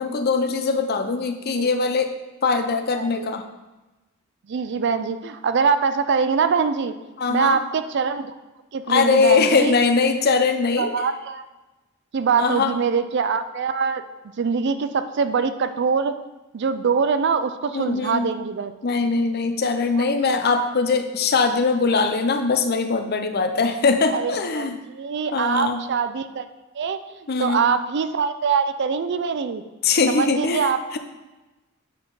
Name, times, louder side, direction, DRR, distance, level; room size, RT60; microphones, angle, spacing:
voice 1, 0.0-2.2 2.4-3.4 7.2-7.6 8.9-11.0 12.4-12.7 17.7-18.3 18.8-24.8 25.3-25.8 27.3-27.6 29.8-31.0, left 4 dB, 50° left, 7 dB, 0.6 m, -21 dB
voice 2, 3.0-3.3 4.5-7.0 7.3-8.3 8.7-9.7 10.8-11.5 12.1-14.0 14.4-16.1 16.5-18.7 20.0-20.3 24.1-24.7 24.9-26.5 26.7-29.6 30.1-30.8, right 5 dB, 60° right, 11 dB, 0.4 m, -23 dB
8.0 x 4.4 x 4.8 m, 1.1 s
head